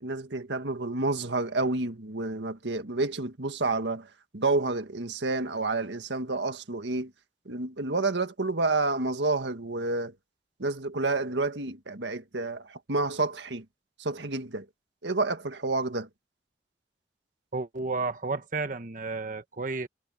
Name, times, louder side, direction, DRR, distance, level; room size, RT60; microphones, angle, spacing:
voice 1, 0.0-4.1 4.3-7.1 7.5-10.1 10.6-13.7 14.0-14.7 15.0-16.1, right 3 dB, 90° right, 1.8 m, -29 dB
voice 2, 17.5-19.9, right 3 dB, 50° right, 1.1 m, -32 dB
head